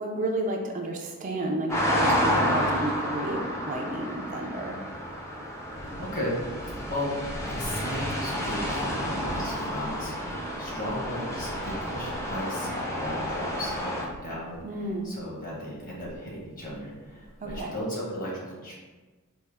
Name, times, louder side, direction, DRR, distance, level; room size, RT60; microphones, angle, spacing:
voice 1, 0.0-4.8 14.6-15.1 17.4-17.7, right 2 dB, 35° right, 1 dB, 0.4 m, -31 dB
sound 1, 1.7-14.0, equal, 15° left, 0.6 m, -30 dB
Thunder, 4.9-17.6, equal, 75° left, 1.4 m, -44 dB
voice 2, 6.0-6.4 6.9-7.1 7.5-14.6 15.0-18.7, equal, 40° left, -5 dB, 1.4 m, -36 dB
4.3 x 2.8 x 3.4 m, 1.3 s
head